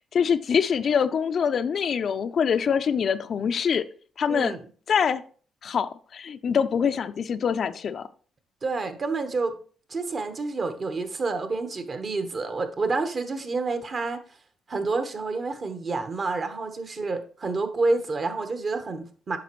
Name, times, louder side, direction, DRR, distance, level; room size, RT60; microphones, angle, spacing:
voice 1, 0.0-3.8 4.2-4.5 4.9-5.2 5.6-8.1, left 7 dB, 55° left, 11 dB, 0.4 m, -24 dB
voice 2, 4.3-4.6 8.6-9.5 9.9-14.2 14.7-19.4, right 3 dB, 45° right, 8 dB, 1.1 m, -28 dB
9.1 x 5.9 x 3.1 m, 0.42 s
cardioid pair, 90°, 0 cm